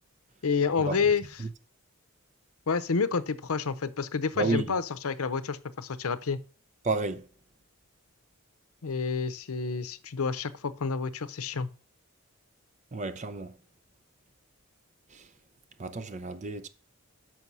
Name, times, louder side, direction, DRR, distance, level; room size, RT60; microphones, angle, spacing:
voice 1, 0.4-1.5 2.7-6.4 8.8-11.7, left 5 dB, 80° left, 0.7 m, -29 dB
voice 2, 4.4-4.7 6.8-7.3 12.9-13.5 15.8-16.7, right 3 dB, 35° right, 0.6 m, -31 dB
6.2 x 5.4 x 6.0 m
head